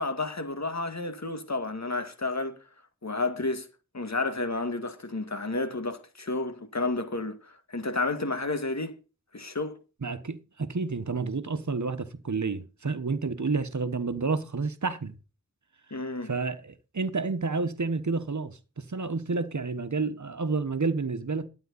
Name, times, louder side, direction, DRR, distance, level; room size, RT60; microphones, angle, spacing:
voice 1, 0.0-2.6 3.0-3.7 3.9-8.9 9.3-9.8 15.9-16.3, left 3 dB, 60° left, 1.9 m, -31 dB
voice 2, 10.0-15.1 16.2-21.5, right 4 dB, 65° right, 1.2 m, -30 dB
12.5 x 9.3 x 4.0 m
wide cardioid pair, 60°, 31 cm